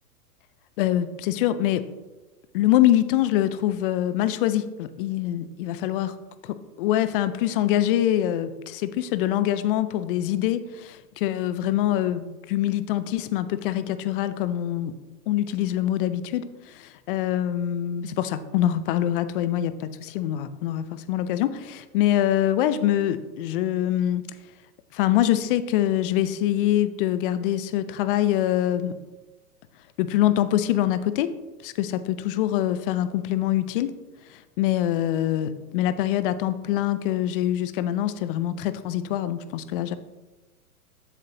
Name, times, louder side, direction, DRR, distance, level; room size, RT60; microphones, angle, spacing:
voice 1, 0.8-1.8 2.5-6.1 6.4-14.9 15.3-24.2 24.9-28.9 30.0-31.3 31.6-33.9 34.3-40.0, left 12 dB, 40° left, 13 dB, 0.4 m, -24 dB
7.6 x 7.5 x 2.9 m, 1.2 s
hypercardioid pair, 115°, 46 cm